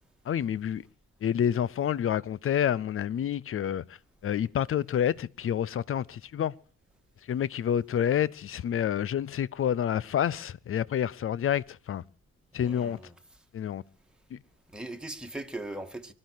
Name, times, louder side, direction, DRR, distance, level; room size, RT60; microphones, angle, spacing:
voice 1, 0.3-0.8 1.2-3.8 4.2-6.5 7.3-12.0 12.5-13.0 13.5-13.8 14.3-14.4, left 9 dB, 35° left, 0.7 m, -28 dB
voice 2, 12.6-13.1 14.7-16.1, right 2 dB, ahead, 2.2 m, -39 dB
25.0 x 12.0 x 4.8 m
figure-of-eight pair, 45°, 38 cm